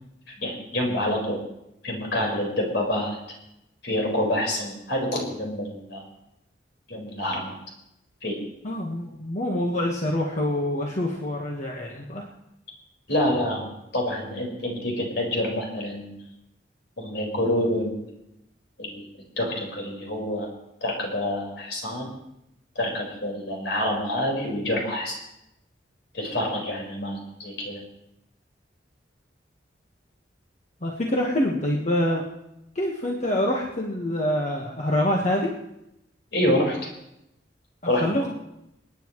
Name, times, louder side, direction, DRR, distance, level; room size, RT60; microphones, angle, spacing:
voice 1, 0.4-1.4 1.8-3.2 3.8-6.1 6.9-7.5 8.2-8.4 13.1-13.7 13.9-16.2 17.0-18.0 18.8-19.0 19.4-20.5 20.8-22.1 22.7-25.1 26.1-27.8 36.3-36.9 37.9-38.0, left 1 dB, 70° left, 0 dB, 4.8 m, -27 dB
voice 2, 8.6-12.3 30.8-32.2 32.7-35.5 37.8-38.3, left 1 dB, 40° left, -1 dB, 1.4 m, -26 dB
29.0 x 9.6 x 3.2 m, 0.83 s
head